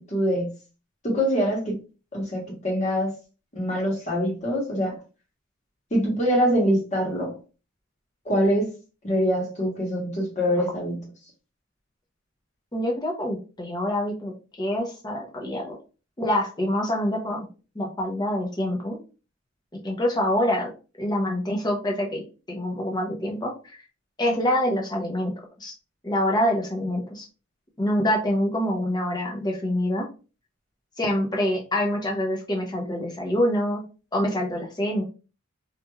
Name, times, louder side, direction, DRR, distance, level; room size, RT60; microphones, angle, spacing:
voice 1, 0.1-0.5 1.0-1.7 2.1-3.1 3.5-5.0 5.9-7.4 8.2-8.7 9.0-11.1, equal, 35° left, -2 dB, 1.1 m, -24 dB
voice 2, 12.7-14.3 14.6-15.8 16.2-17.5 17.7-19.0 19.7-20.7 21.0-23.8 24.2-25.3 25.6-25.7 26.0-27.3 27.8-30.1 31.0-33.8 34.1-35.0, left 1 dB, 20° left, 0 dB, 0.7 m, -26 dB
3.1 x 2.4 x 2.3 m, 0.33 s
head